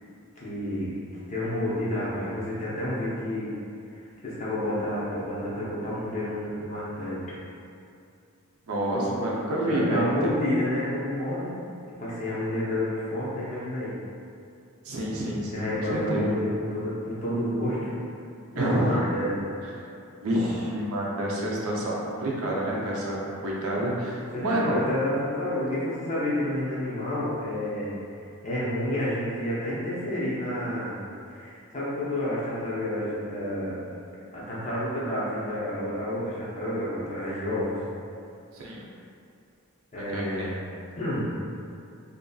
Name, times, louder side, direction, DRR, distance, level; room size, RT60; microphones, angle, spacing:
voice 1, 0.4-1.0 1.3-3.6 3.9-7.4 9.6-11.6 12.0-14.0 15.5-18.0 18.5-19.4 24.3-28.0 28.4-31.0 31.3-33.8 34.3-37.8 39.9-40.5 41.0-41.3, left 1 dB, 35° left, -8 dB, 0.6 m, -30 dB
voice 2, 8.7-10.1 14.8-16.3 18.5-19.0 19.6-19.9 20.2-23.2 23.4-24.8 38.5-38.9 40.0-40.6, right 1 dB, 85° right, -4 dB, 0.5 m, -28 dB
2.6 x 2.6 x 2.3 m, 2.5 s
head